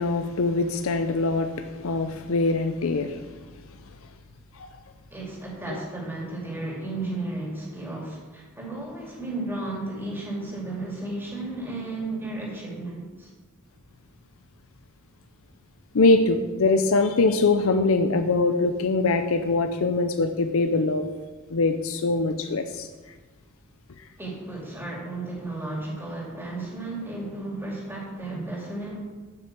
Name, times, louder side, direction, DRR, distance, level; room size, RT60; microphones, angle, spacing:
voice 1, 0.0-3.2 4.6-4.7 5.7-5.8 15.9-21.1 21.5-22.9, left 3 dB, 75° left, 7 dB, 0.6 m, -23 dB
voice 2, 5.1-13.3 24.2-29.0, right 2 dB, 10° right, -3 dB, 2.5 m, -34 dB
7.5 x 6.1 x 7.5 m, 1.3 s
head